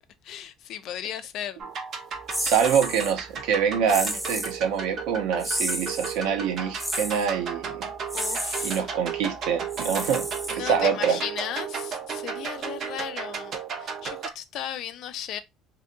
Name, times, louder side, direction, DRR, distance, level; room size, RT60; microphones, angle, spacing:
voice 1, 0.2-1.7 8.1-8.9 10.5-15.4, left 10 dB, 60° left, 0.4 m, -36 dB
sound 1, 1.6-14.3, right 6 dB, 50° right, 0.7 m, -34 dB
sound 2, 2.3-3.1 3.9-4.6 5.4-6.2 6.8-7.3 8.1-8.8 9.7-10.9, equal, 5° right, 0.5 m, -31 dB
voice 2, 2.4-7.9 8.6-11.2, right 7 dB, 85° right, 0.7 m, -25 dB
2.7 x 2.7 x 2.5 m
cardioid pair, 135°, 0 cm